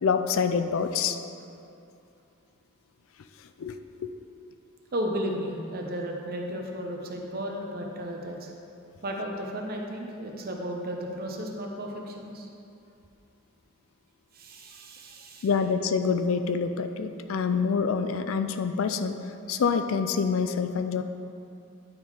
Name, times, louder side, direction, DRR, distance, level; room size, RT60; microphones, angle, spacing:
voice 1, 0.0-1.2 3.6-3.8 4.0-4.1 15.4-19.2 19.5-21.0, left 5 dB, 60° left, 9 dB, 0.4 m, -26 dB
voice 2, 4.9-8.5 9.0-12.5 14.3-15.5, equal, 40° right, 1 dB, 0.8 m, -34 dB
10.0 x 3.7 x 4.8 m, 2.6 s
head